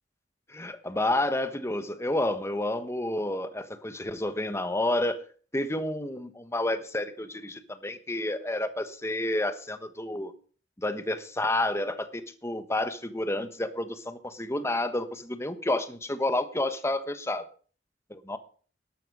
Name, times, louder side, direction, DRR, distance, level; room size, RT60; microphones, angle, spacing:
voice 1, 0.5-5.2 5.5-10.3 10.8-17.5 18.1-18.4, left 1 dB, 15° left, 10 dB, 1.2 m, -30 dB
12.5 x 12.0 x 5.4 m, 0.42 s
head